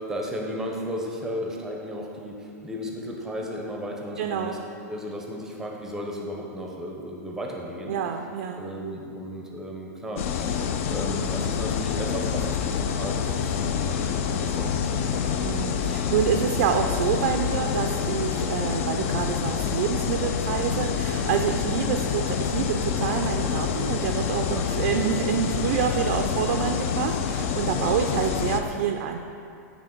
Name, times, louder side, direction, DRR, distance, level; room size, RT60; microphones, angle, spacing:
voice 1, 0.0-4.6 4.9-8.0 8.6-15.7 20.7-20.9 24.4-24.6 27.7-28.0, equal, 5° right, 0 dB, 0.6 m, -35 dB
voice 2, 4.2-4.6 7.9-8.6 15.4-29.2, right 8 dB, 50° right, 4 dB, 0.4 m, -27 dB
sound 1, 10.2-28.6, left 7 dB, 50° left, 0.4 m, -27 dB
8.8 x 3.4 x 4.4 m, 2.6 s
supercardioid pair, 160°, 9 cm